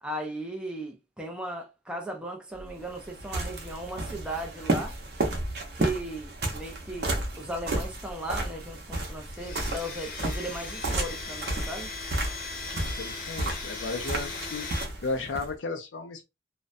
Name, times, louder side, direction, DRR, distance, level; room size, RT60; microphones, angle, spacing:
voice 1, 0.0-4.9 5.7-7.1 7.4-12.2, right 1 dB, 5° right, 0.4 m, -37 dB
sound 1, 2.5-15.5, right 2 dB, 60° right, 0.7 m, -33 dB
Domestic sounds home sounds, 9.3-14.8, left 4 dB, 50° left, 0.8 m, -38 dB
voice 2, 12.7-14.7 15.0-16.2, left 3 dB, 85° left, 0.5 m, -34 dB
2.5 x 2.1 x 2.5 m
head